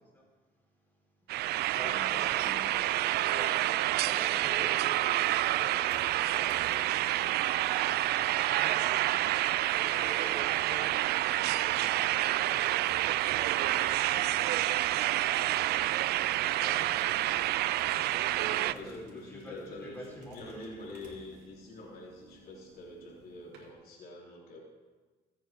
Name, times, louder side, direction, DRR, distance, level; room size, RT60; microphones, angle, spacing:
voice 1, 0.1-2.5 3.3-3.5 4.0-6.3 7.8-21.1, equal, 10° left, -3 dB, 4.0 m, -49 dB
sound 1, 1.3-18.7, right 15 dB, 70° right, 0.4 m, -28 dB
voice 2, 1.7-3.8 5.9-6.9 12.6-12.9 18.4-24.6, left 2 dB, 65° left, -3 dB, 3.8 m, -47 dB
sound 2, 5.3-23.7, right 3 dB, 85° right, 2.9 m, -55 dB
22.5 x 9.1 x 3.7 m, 1.3 s
cardioid pair, 110°, 17 cm